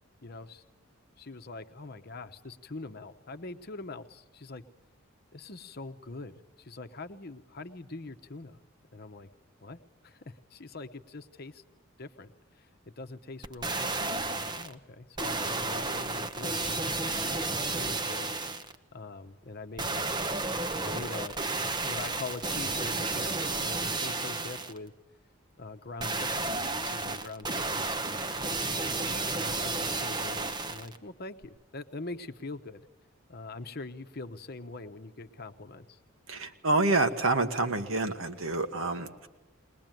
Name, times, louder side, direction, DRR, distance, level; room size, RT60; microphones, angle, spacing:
voice 1, 0.2-0.6 1.2-4.6 5.3-8.6 8.9-9.3 9.6-11.6 12.0-12.7 13.0-18.4 18.9-20.2 20.8-24.9 25.6-28.2 28.9-32.8 33.3-36.0, left 3 dB, 50° left, 8 dB, 1.0 m, -43 dB
sound 1, 13.4-14.7 15.2-18.8 19.8-24.8 26.0-31.0 31.4-31.5, right 3 dB, 20° right, 0.8 m, -32 dB
voice 2, 36.3-39.3, right 2 dB, 70° right, 7 dB, 1.5 m, -28 dB
21.0 x 20.5 x 9.2 m, 1.1 s
head